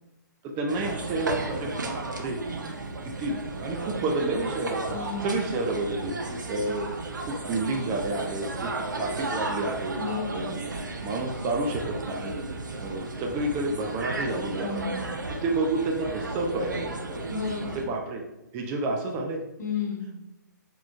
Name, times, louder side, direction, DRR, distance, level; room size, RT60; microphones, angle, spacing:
voice 1, 0.5-2.4 3.0-4.8 5.2-6.9 7.2-10.0 10.3-10.6 11.0-12.4 12.8-14.8 15.4-17.2 17.7-18.2 18.5-19.4, right 2 dB, 20° right, 1 dB, 0.5 m, -30 dB
sound 1, 0.7-17.8, right 2 dB, 70° right, 0.7 m, -34 dB
voice 2, 4.9-5.5 10.0-10.5 14.6-15.1 17.3-17.8 19.6-20.1, left 5 dB, 60° left, 0 dB, 1.2 m, -32 dB
7.2 x 3.1 x 2.4 m, 0.95 s
figure-of-eight pair, 130°, 10 cm